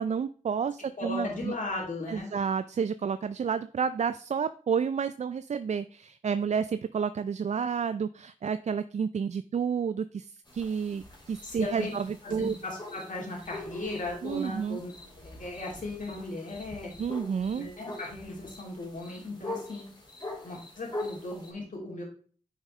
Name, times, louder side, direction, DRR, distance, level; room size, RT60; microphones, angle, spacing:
voice 1, 0.0-1.5 2.1-12.6 14.2-14.8 17.0-17.7, right 6 dB, 55° right, 12 dB, 0.4 m, -30 dB
voice 2, 1.0-2.3 11.4-11.9 12.2-16.9 17.5-19.9 20.4-22.0, left 2 dB, 70° left, -2 dB, 2.8 m, -37 dB
sound 1, 10.4-21.5, left 2 dB, 30° left, 2.9 m, -43 dB
8.9 x 4.9 x 3.2 m, 0.43 s
cardioid pair, 50°, 14 cm